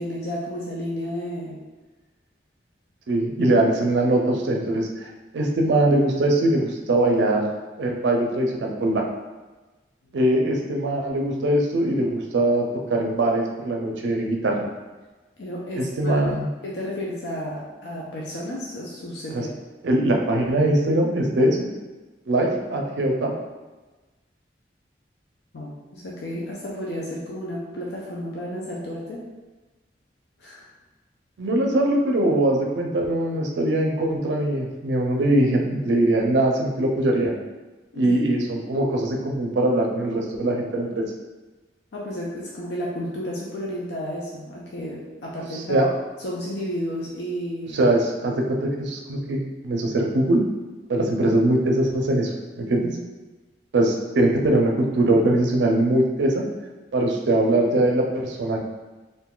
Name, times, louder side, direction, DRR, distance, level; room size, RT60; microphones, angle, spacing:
voice 1, 0.0-1.6 15.4-16.3 16.6-19.5 25.5-29.2 30.4-30.7 37.9-38.2 41.9-45.9 46.2-47.8, equal, 75° left, -4 dB, 0.5 m, -32 dB
voice 2, 3.1-7.4 7.8-9.0 10.1-14.7 15.7-16.5 19.3-19.4 19.8-21.6 22.3-23.3 31.4-37.4 38.0-41.0 45.5-45.8 47.7-48.3 48.6-50.4 50.9-53.0 53.7-56.4 56.9-58.6, right 1 dB, 85° right, 1 dB, 0.5 m, -22 dB
2.6 x 2.3 x 3.7 m, 1.2 s
head